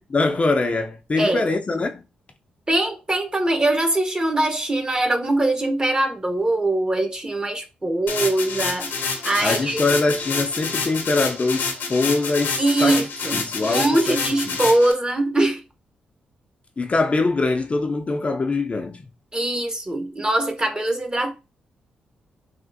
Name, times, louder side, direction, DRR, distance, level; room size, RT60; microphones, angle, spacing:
voice 1, 0.1-2.0 9.4-13.0 13.3-14.2 14.5-14.6 16.8-19.1, left 3 dB, 35° left, 0.4 m, -23 dB
voice 2, 1.2-1.5 2.7-8.9 9.2-9.8 12.6-15.6 19.3-21.3, right 1 dB, 25° right, 0.9 m, -22 dB
sound 1, 8.1-14.9, left 5 dB, 70° left, 0.7 m, -28 dB
3.4 x 2.4 x 2.6 m
supercardioid pair, 45°, 4 cm